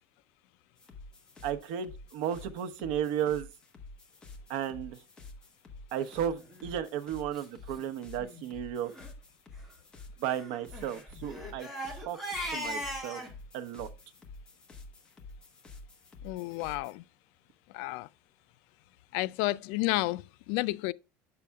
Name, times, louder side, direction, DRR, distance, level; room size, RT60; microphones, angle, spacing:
sound 1, 0.8-16.9, left 3 dB, 15° left, 1.1 m, -50 dB
voice 1, 1.4-3.5 4.5-5.0 5.9-8.9 10.2-12.2 12.5-13.2 13.5-13.9, right 9 dB, 90° right, 0.8 m, -34 dB
Crying sobbing, 6.4-6.7 7.3-7.4 7.7-7.8 8.2-8.4 8.8-9.1 10.2-13.3, equal, ahead, 1.8 m, -39 dB
voice 2, 16.2-17.0 17.7-18.1 19.1-20.9, left 19 dB, 85° left, 0.3 m, -31 dB
8.4 x 6.7 x 2.3 m
cardioid pair, 175°, 6 cm